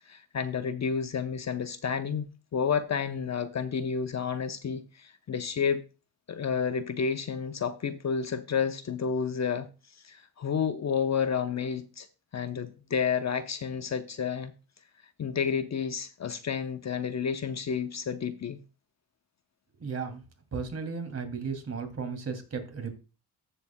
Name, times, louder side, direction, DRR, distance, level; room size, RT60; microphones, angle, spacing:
voice 1, 0.1-2.3 2.5-5.8 6.3-9.7 10.0-12.1 12.3-14.5 15.2-18.6, left 6 dB, 45° left, 0.8 m, -30 dB
voice 2, 19.8-20.2 20.5-22.9, right 5 dB, 40° right, 2.6 m, -35 dB
14.0 x 7.0 x 2.2 m
cardioid pair, 85°, 39 cm